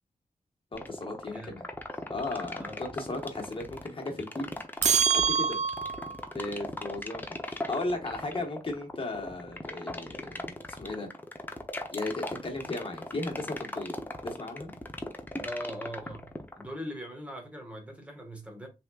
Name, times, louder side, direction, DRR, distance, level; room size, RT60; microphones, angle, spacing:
voice 1, 0.7-1.6 2.1-4.5 5.1-5.6 6.3-10.4 10.7-11.1 11.9-13.9 14.2-14.7, left 2 dB, 40° left, 1.5 m, -36 dB
sound 1, 0.7-16.7, left 1 dB, 15° left, 0.7 m, -37 dB
voice 2, 1.2-1.6 2.6-2.8 15.4-16.3 16.5-18.7, equal, 10° right, 1.6 m, -40 dB
sound 2, 4.8-6.2, right 7 dB, 55° right, 0.4 m, -25 dB
5.6 x 3.6 x 2.4 m
wide cardioid pair, 150°, 14 cm